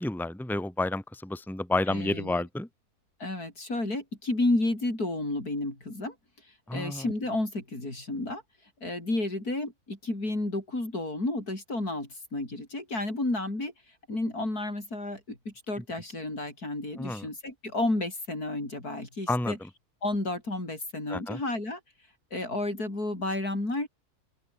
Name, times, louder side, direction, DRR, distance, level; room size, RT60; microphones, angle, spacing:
voice 1, 0.0-2.7 6.7-7.0 17.0-17.3 19.3-19.6 21.1-21.4, left 2 dB, ahead, 2.0 m, -30 dB
voice 2, 1.9-2.4 3.2-6.1 6.7-8.4 8.8-13.7 14.1-19.6 20.0-21.8 22.3-23.9, left 2 dB, 75° left, 7.9 m, -31 dB
open air
omnidirectional pair, 1.6 m